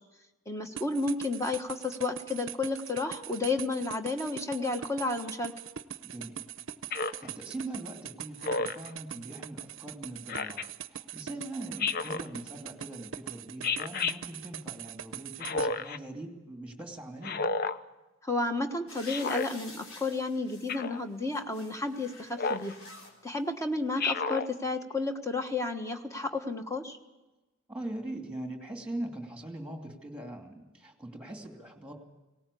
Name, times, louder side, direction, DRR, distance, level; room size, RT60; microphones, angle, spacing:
voice 1, 0.5-5.5 18.2-22.8 23.2-27.0, left 3 dB, 15° left, 6 dB, 1.4 m, -32 dB
sound 1, 0.8-15.7, right 9 dB, 65° right, 0.6 m, -42 dB
voice 2, 6.0-6.4 6.9-10.6 10.9-17.5 27.7-31.9, right 1 dB, 5° right, 3 dB, 2.6 m, -41 dB
Speech synthesizer, 6.9-7.3 8.4-8.9 10.3-10.7 11.8-12.3 13.6-14.2 15.4-16.0 17.2-17.8 19.1-19.5 20.7-21.0 22.4-22.7 24.0-24.5, left 4 dB, 50° left, 0.6 m, -31 dB
sound 2, 18.9-20.8 21.2-23.1 24.0-24.1, left 2 dB, 85° left, 3.8 m, -50 dB
18.5 x 18.0 x 8.5 m, 1.1 s
head